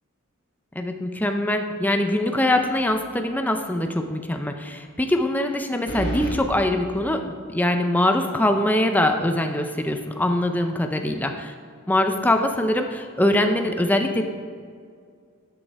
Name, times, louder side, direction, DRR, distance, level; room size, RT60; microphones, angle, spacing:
voice 1, 0.7-11.5 11.9-14.2, left 1 dB, 5° left, 5 dB, 0.5 m, -23 dB
sound 1, 2.7-3.2 3.6-3.7 5.9-6.4, right 1 dB, 45° left, 2.4 m, -30 dB
11.0 x 6.5 x 4.6 m, 2.1 s
head